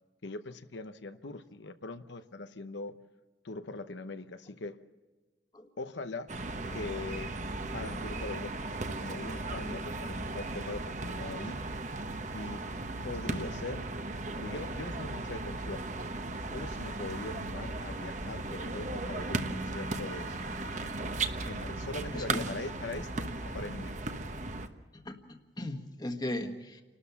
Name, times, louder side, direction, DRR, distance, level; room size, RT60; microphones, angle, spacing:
voice 1, 0.2-2.9 3.4-4.8 5.8-6.3 6.7-7.3 7.7-8.5 9.0-11.6 12.3-12.6 13.0-13.9 14.4-15.8 16.5-20.4 21.4-24.0, left 2 dB, 85° left, 9 dB, 0.9 m, -41 dB
sound 1, 6.3-24.7, right 2 dB, 40° right, 1.1 m, -36 dB
voice 2, 22.1-22.4 25.0-26.8, left 1 dB, 25° left, 5 dB, 1.4 m, -38 dB
29.5 x 13.0 x 7.1 m, 1.2 s
head